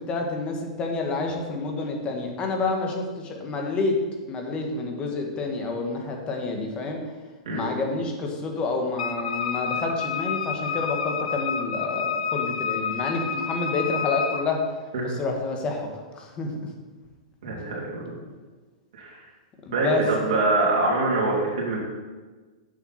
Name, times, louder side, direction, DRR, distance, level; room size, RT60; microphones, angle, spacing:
voice 1, 0.0-4.0 4.3-7.0 7.5-14.7 15.0-16.5 19.6-20.0 20.3-20.4, left 3 dB, 25° left, 2 dB, 1.7 m, -29 dB
Wind instrument woodwind instrument, 9.0-14.5, left 6 dB, 80° left, 0.8 m, -29 dB
voice 2, 17.4-18.0 18.9-19.2 19.7-21.8, right 2 dB, 75° right, -4 dB, 2.9 m, -24 dB
7.8 x 6.1 x 5.9 m, 1.3 s
hypercardioid pair, 130°, 4 cm